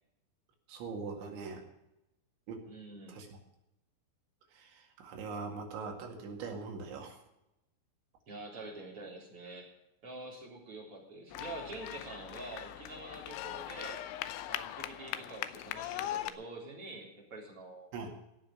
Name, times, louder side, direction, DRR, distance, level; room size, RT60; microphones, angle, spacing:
voice 1, 0.7-1.6 2.5-2.6 3.1-3.3 4.5-7.2 17.9-18.1, right 4 dB, 70° right, 2 dB, 4.4 m, -41 dB
voice 2, 2.7-3.2 8.3-9.7 10.0-14.0 14.4-17.9, right 2 dB, 30° right, -2 dB, 4.0 m, -46 dB
sound 1, 11.3-16.3, left 13 dB, 80° left, 2.9 m, -40 dB
17.5 x 6.3 x 9.5 m, 0.89 s
omnidirectional pair, 5.6 m